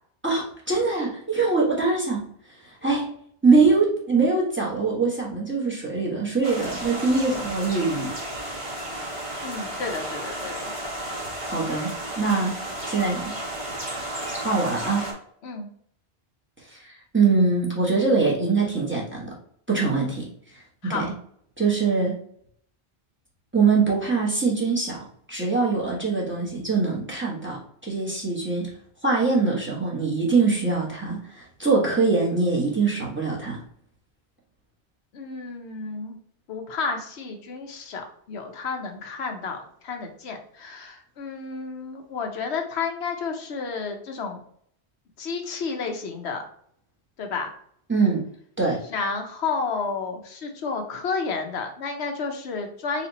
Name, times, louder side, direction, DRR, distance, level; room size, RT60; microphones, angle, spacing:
voice 1, 0.2-2.2 2.6-3.1 3.4-8.1 11.4-12.5 12.9-13.3 14.3-15.1 16.7-19.3 19.7-20.3 20.5-21.1 21.6-22.1 23.5-28.7 29.0-33.6 47.9-48.2 48.6-48.8, right 4 dB, 10° right, -3 dB, 1.2 m, -23 dB
sound 1, 6.4-15.1, right 1 dB, 30° right, 1.1 m, -33 dB
voice 2, 9.4-10.7 15.4-15.7 20.8-21.1 35.1-36.2 36.5-39.6 39.8-44.4 45.2-46.4 47.2-47.5 48.9-53.1, left 4 dB, 90° left, 4 dB, 1.0 m, -31 dB
4.2 x 2.5 x 4.0 m, 0.63 s
omnidirectional pair, 1.1 m